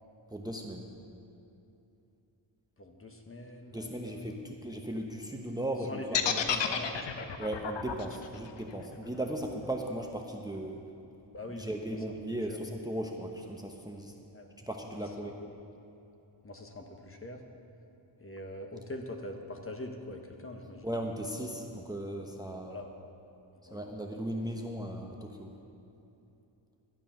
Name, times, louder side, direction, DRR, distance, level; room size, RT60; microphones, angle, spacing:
voice 1, 0.3-0.9 3.7-6.6 7.4-10.8 11.5-14.1 14.7-15.4 20.8-22.7 23.7-25.5, right 1 dB, 10° right, 2 dB, 0.9 m, -37 dB
voice 2, 2.8-4.3 5.9-7.4 11.3-12.2 12.5-12.6 14.3-14.5 14.9-15.5 16.4-17.4 18.2-20.9 22.5-22.9 23.6-23.8, left 1 dB, 30° left, 3 dB, 1.4 m, -43 dB
sound 1, 6.1-10.2, left 8 dB, 70° left, 0.9 m, -32 dB
13.0 x 8.8 x 5.8 m, 2.9 s
cardioid pair, 70°, 45 cm